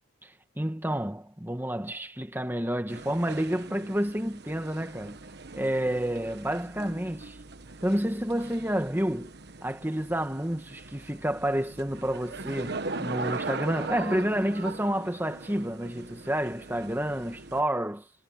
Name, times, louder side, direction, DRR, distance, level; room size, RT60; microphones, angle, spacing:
voice 1, 0.2-5.2 5.5-7.4 7.8-9.3 9.6-18.1, right 1 dB, 10° right, 1.6 m, -29 dB
sound 1, 2.9-17.6, right 3 dB, 55° right, 1.3 m, -40 dB
head